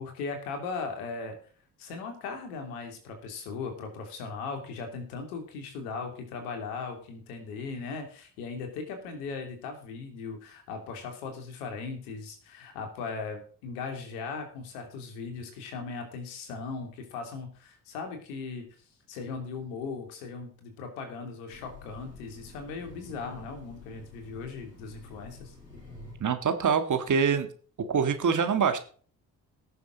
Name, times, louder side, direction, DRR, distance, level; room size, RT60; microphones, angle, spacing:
voice 1, 0.0-1.4 1.8-18.6 19.1-25.8, left 4 dB, 70° left, 5 dB, 3.0 m, -38 dB
Train, 21.5-26.4, left 3 dB, 90° left, 2.9 m, -49 dB
voice 2, 26.2-27.5 27.9-28.8, right 6 dB, 40° right, 9 dB, 1.8 m, -25 dB
18.0 x 7.1 x 3.9 m, 0.43 s
figure-of-eight pair, 45°, 47 cm